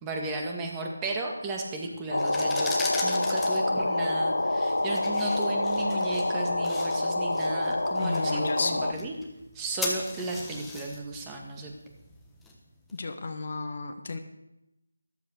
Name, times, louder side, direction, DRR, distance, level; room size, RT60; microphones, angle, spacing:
voice 1, 0.0-2.7 3.0-9.2 9.5-11.7, right 2 dB, 15° right, 1 dB, 2.0 m, -34 dB
sound 1, 2.1-8.9, left 2 dB, 85° left, 1.0 m, -27 dB
sound 2, 2.1-12.9, left 2 dB, 5° left, 1.5 m, -40 dB
voice 2, 8.0-9.0 12.9-14.2, left 3 dB, 45° left, 7 dB, 1.5 m, -33 dB
14.0 x 13.0 x 6.7 m, 0.90 s
figure-of-eight pair, 165°, 0 cm